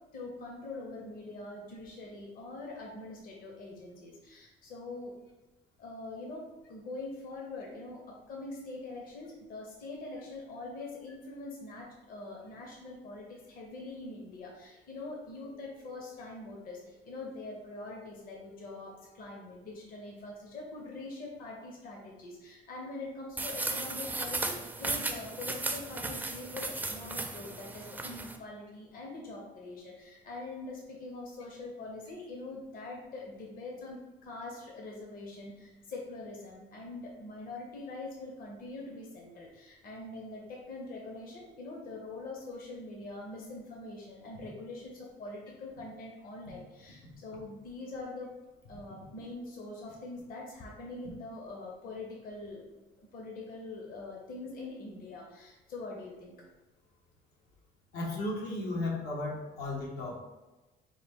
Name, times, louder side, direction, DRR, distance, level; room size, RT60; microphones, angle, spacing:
voice 1, 0.1-5.1 5.8-6.4 6.7-48.3 48.7-52.6 53.0-56.3, left 2 dB, 60° left, -1 dB, 0.8 m, -43 dB
sound 1, 23.4-28.4, right 2 dB, 10° right, 0.4 m, -36 dB
voice 2, 57.9-60.2, left 2 dB, 90° left, -2 dB, 1.0 m, -34 dB
4.8 x 2.2 x 3.5 m, 1.1 s
cardioid pair, 110°, 17 cm